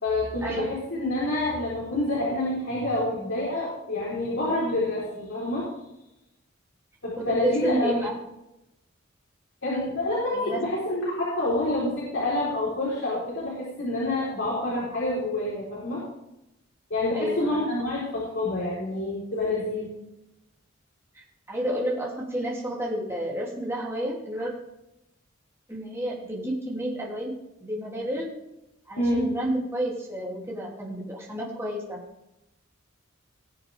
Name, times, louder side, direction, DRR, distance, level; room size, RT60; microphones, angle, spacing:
voice 1, 0.0-5.7 7.0-8.1 9.6-16.0 16.9-19.9 29.0-29.3, left 1 dB, 70° left, -7 dB, 4.3 m, -27 dB
voice 2, 7.2-8.1 10.3-10.7 17.1-17.6 21.1-24.5 25.7-27.3 27.6-28.3 28.9-32.0, right 1 dB, 10° right, -4 dB, 3.1 m, -30 dB
19.5 x 7.2 x 3.6 m, 0.88 s
head